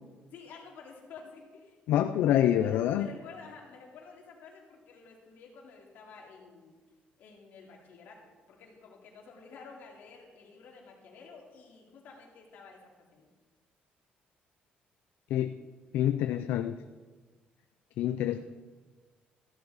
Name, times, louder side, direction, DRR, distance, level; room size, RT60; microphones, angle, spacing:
voice 1, 0.3-1.8 2.1-6.8 7.2-12.8 13.1-13.3 18.3-18.4, left 5 dB, 65° left, -1 dB, 2.7 m, -50 dB
voice 2, 1.9-3.1 15.3-15.6 15.9-16.7 18.0-18.4, left 11 dB, 85° left, 9 dB, 0.5 m, -26 dB
14.5 x 11.5 x 4.1 m, 1.4 s
cardioid pair, 175°, 3 cm